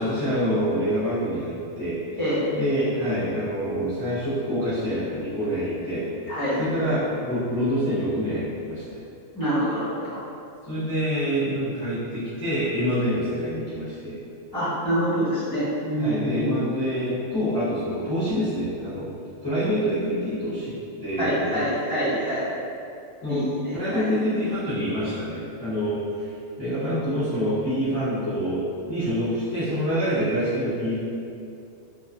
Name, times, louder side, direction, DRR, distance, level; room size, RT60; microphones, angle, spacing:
voice 1, 0.0-2.0 2.5-6.0 6.6-9.0 10.7-14.2 16.0-19.1 19.4-20.7 21.0-21.6 23.2-23.5 23.7-26.0 26.6-31.0, equal, 25° left, -15 dB, 0.6 m, -26 dB
voice 2, 6.3-6.6 9.3-10.2 14.5-16.7 21.2-22.4 23.3-24.1, equal, 5° left, -14 dB, 1.1 m, -26 dB
2.4 x 2.4 x 2.5 m, 2.6 s
omnidirectional pair, 1.4 m